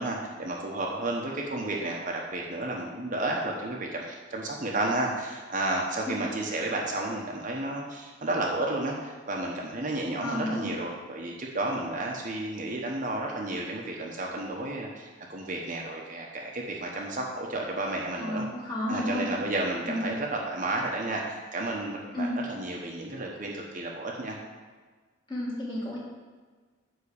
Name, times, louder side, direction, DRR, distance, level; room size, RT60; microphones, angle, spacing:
voice 1, 0.0-18.4 18.9-24.4, right 2 dB, 40° right, -1 dB, 1.0 m, -32 dB
voice 2, 10.2-10.7 18.2-19.3 19.9-20.1 22.1-22.4 25.3-26.0, left 1 dB, 25° left, -5 dB, 2.2 m, -31 dB
9.9 x 3.7 x 7.0 m, 1.4 s
head